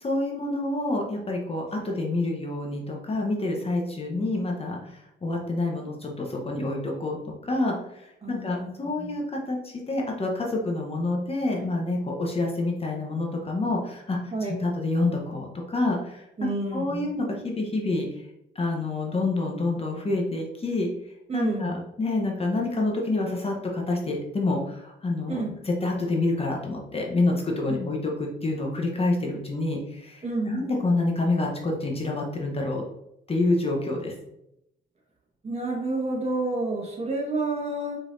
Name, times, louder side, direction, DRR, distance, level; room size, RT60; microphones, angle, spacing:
voice 1, 0.0-7.2 7.4-14.2 14.6-16.2 16.7-18.2 18.5-20.9 21.3-25.4 25.6-32.8 33.3-34.1, left 2 dB, 30° left, 0 dB, 0.9 m, -27 dB
voice 2, 8.2-8.7 9.0-9.2 14.3-14.7 16.4-17.1 21.3-21.7 25.3-25.5 27.7-27.9 30.2-30.7 35.4-38.0, right 2 dB, 30° right, -2 dB, 1.5 m, -29 dB
4.5 x 3.9 x 2.6 m, 0.83 s
cardioid pair, 90°, 20 cm